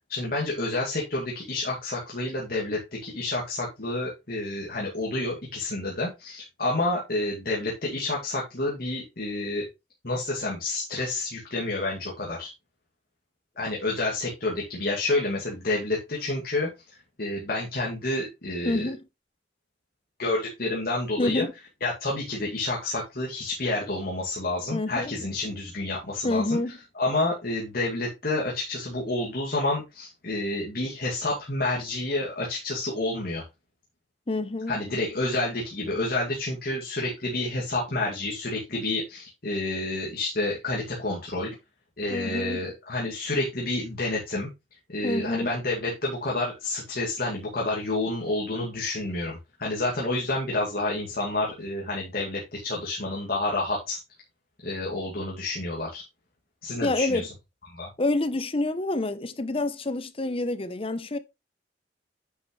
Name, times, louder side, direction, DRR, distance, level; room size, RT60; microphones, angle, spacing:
voice 1, 0.1-9.6 10.0-12.5 13.6-16.7 17.2-18.9 20.2-21.5 21.8-26.6 27.0-33.4 34.7-41.5 42.0-44.5 44.9-54.0 54.6-56.0 56.6-57.3 57.7-57.9, left 2 dB, 55° left, 2.3 m, -29 dB
voice 2, 18.6-19.0 21.2-21.5 24.7-25.1 26.2-26.7 34.3-34.8 42.1-42.6 45.0-45.5 56.8-57.2 58.0-61.2, left 2 dB, 30° left, 0.8 m, -27 dB
9.7 x 6.2 x 3.2 m
head